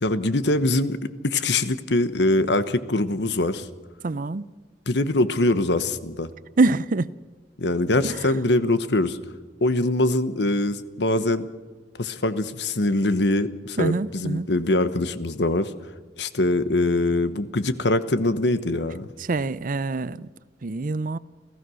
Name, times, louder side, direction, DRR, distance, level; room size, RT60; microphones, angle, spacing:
voice 1, 0.0-3.7 4.9-6.3 7.6-9.2 9.6-11.5 12.0-15.7 16.2-19.1, left 2 dB, 70° left, 1.1 m, -23 dB
voice 2, 4.0-4.5 6.6-7.1 8.0-8.2 13.8-14.5 19.2-20.3 20.6-21.2, right 3 dB, 50° right, 0.6 m, -25 dB
28.5 x 15.5 x 6.4 m
head